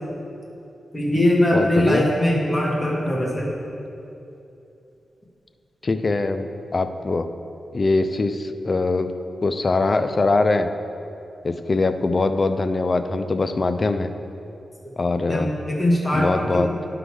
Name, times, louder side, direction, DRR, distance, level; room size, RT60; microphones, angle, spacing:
voice 1, 0.9-3.5 15.3-16.3 16.5-16.7, left 1 dB, 15° left, -4 dB, 1.7 m, -21 dB
voice 2, 1.5-2.1 5.8-7.3 7.7-9.1 9.4-10.7 11.4-14.1 15.0-15.5 16.1-16.7, left 3 dB, 40° left, 9 dB, 0.4 m, -22 dB
11.0 x 3.9 x 4.8 m, 2.8 s
wide cardioid pair, 90°, 0 cm